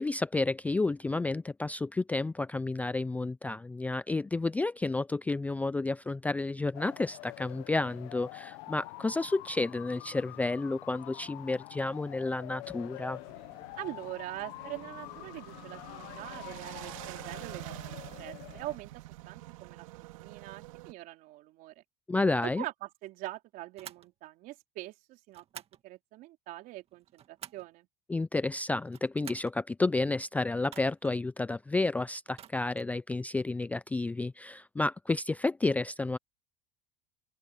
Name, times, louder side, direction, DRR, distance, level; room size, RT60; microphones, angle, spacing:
voice 1, 0.0-13.2 22.1-22.6 28.1-36.2, left 3 dB, 10° left, 0.4 m, -31 dB
sound 1, 6.7-18.8, left 23 dB, 70° left, 1.0 m, -46 dB
sound 2, 13.1-20.9, right 17 dB, 85° right, 3.0 m, -47 dB
voice 2, 13.8-19.9 20.1-21.8 22.6-27.9, right 17 dB, 60° right, 3.5 m, -43 dB
sound 3, 23.8-24.1 25.3-25.8 26.9-27.7 28.8-29.6 30.6-31.2 32.3-32.9, right 10 dB, 35° right, 2.0 m, -49 dB
open air
supercardioid pair, 120°, 17 cm